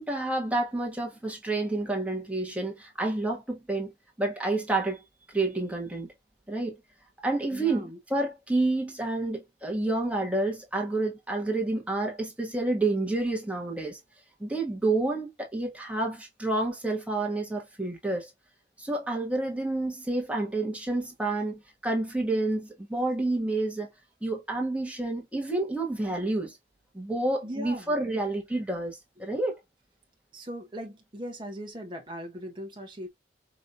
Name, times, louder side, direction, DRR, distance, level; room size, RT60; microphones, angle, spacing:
voice 1, 0.0-3.9 4.2-5.0 5.3-6.1 6.5-6.8 7.2-14.0 14.4-18.3 18.8-23.9 24.2-26.6 26.9-29.6, right 2 dB, 5° right, 1.2 m, -29 dB
voice 2, 7.5-8.0 27.4-28.2 30.3-33.1, equal, 25° right, 0.9 m, -39 dB
5.1 x 2.7 x 2.5 m
head